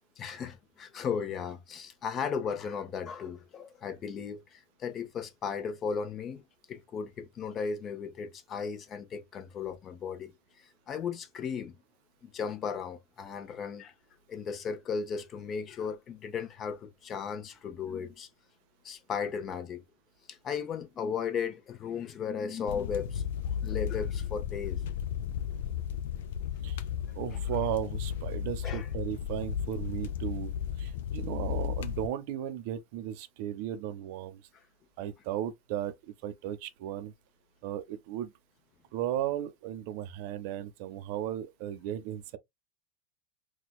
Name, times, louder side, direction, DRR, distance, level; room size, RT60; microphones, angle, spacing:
voice 1, 0.2-11.7 12.2-13.9 14.3-18.3 18.8-19.8 20.3-23.2 23.6-24.9 28.6-28.9 34.5-34.6, left 6 dB, 35° left, 0.7 m, -36 dB
sound 1, 22.7-32.1, left 9 dB, 75° left, 0.4 m, -34 dB
voice 2, 27.1-30.5 30.8-34.4 35.0-37.1 37.6-38.3 38.9-42.4, right 11 dB, 65° right, 0.5 m, -35 dB
4.3 x 2.2 x 2.3 m
supercardioid pair, 115°, 0 cm